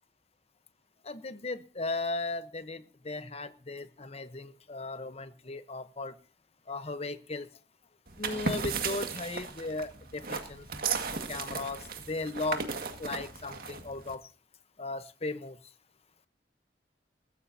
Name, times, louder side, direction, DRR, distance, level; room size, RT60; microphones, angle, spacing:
voice 1, 1.0-6.2 6.7-7.5 8.2-10.7 11.3-12.7 13.0-14.3 14.8-15.6, left 3 dB, 35° left, 1.0 m, -36 dB
sound 1, 8.1-14.1, right 4 dB, 55° right, 1.9 m, -35 dB
21.0 x 15.0 x 2.8 m
head